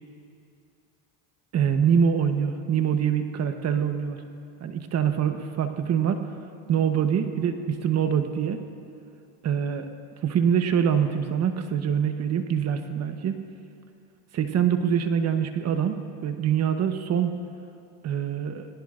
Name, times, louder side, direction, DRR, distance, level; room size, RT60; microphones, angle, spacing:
voice 1, 1.5-4.2 4.6-6.3 6.7-8.6 9.4-9.9 10.2-13.5 14.3-17.3 18.0-18.7, right 8 dB, 40° right, 7 dB, 1.1 m, -24 dB
26.0 x 18.5 x 2.5 m, 2.6 s
supercardioid pair, 95°, 39 cm